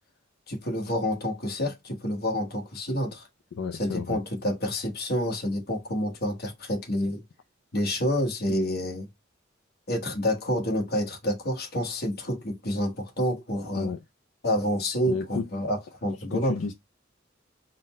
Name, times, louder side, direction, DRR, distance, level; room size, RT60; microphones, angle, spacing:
voice 1, 0.5-3.3 3.7-7.2 7.7-9.1 9.9-13.9 14.4-16.6, equal, 55° left, 1.2 m, -28 dB
voice 2, 3.6-4.2 13.7-14.0 15.1-15.4 16.3-16.7, left 4 dB, 70° left, 0.4 m, -31 dB
4.0 x 2.1 x 4.1 m
head